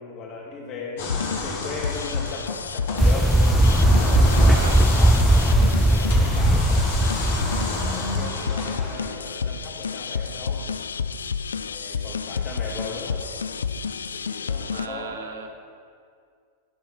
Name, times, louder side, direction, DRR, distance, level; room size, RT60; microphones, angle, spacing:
voice 1, 0.0-3.4 3.9-6.9 7.7-10.6 11.7-13.2 14.1-15.2, left 4 dB, 40° left, -3 dB, 2.6 m, -37 dB
sound 1, 1.0-14.9, left 6 dB, 85° left, 0.3 m, -30 dB
sound 2, 1.0-9.3, left 2 dB, 60° left, 2.3 m, -32 dB
sound 3, 3.0-8.3, right 1 dB, 5° right, 0.3 m, -18 dB
voice 2, 4.5-4.9 14.6-15.5, right 5 dB, 80° right, 5 dB, 1.0 m, -36 dB
11.5 x 5.6 x 5.8 m, 2.2 s
hypercardioid pair, 100°, 0 cm